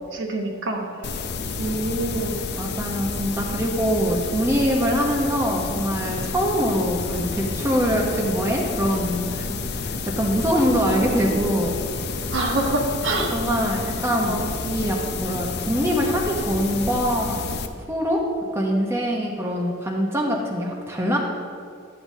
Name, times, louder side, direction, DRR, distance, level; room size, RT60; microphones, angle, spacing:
voice 1, 0.1-0.9 1.6-2.4 10.9-11.4 12.3-13.3 14.2-14.4, right 2 dB, 60° right, 1 dB, 1.1 m, -26 dB
sound 1, 1.0-17.7, left 4 dB, 55° left, 0.5 m, -30 dB
voice 2, 2.6-11.7 13.3-14.4 14.6-17.5 17.9-18.2 18.5-21.2, equal, 10° right, -2 dB, 0.7 m, -23 dB
11.5 x 7.6 x 2.7 m, 2.4 s
head